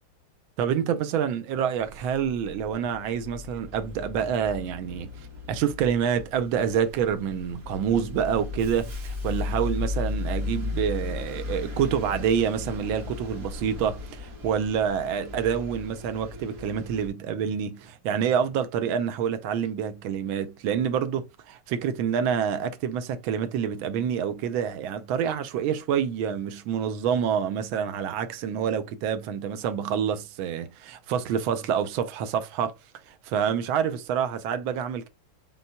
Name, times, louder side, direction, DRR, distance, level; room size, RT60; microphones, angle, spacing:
voice 1, 0.6-5.1 5.5-32.8 33.1-35.1, right 8 dB, 90° right, 1.4 m, -27 dB
Bus, 1.8-17.1, left 3 dB, 50° right, 1.6 m, -36 dB
5.7 x 3.8 x 2.2 m
omnidirectional pair, 2.2 m